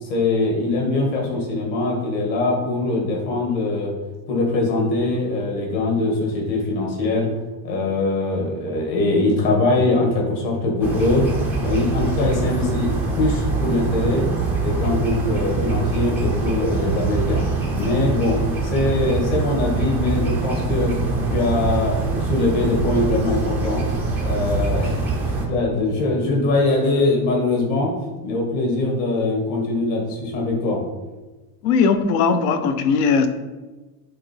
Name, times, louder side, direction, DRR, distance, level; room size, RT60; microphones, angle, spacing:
voice 1, 0.0-3.9 4.3-7.3 7.6-11.2 11.6-14.3 14.6-17.4 17.7-18.4 18.6-21.0 21.3-23.8 24.2-25.1 25.5-27.9 28.2-30.8, left 2 dB, 45° left, -1 dB, 2.0 m, -22 dB
sound 1, 10.8-25.5, right 3 dB, 5° right, 0.4 m, -24 dB
voice 2, 31.6-33.3, left 5 dB, 65° left, 10 dB, 0.8 m, -18 dB
7.8 x 3.8 x 4.5 m, 1.2 s
supercardioid pair, 170°, 48 cm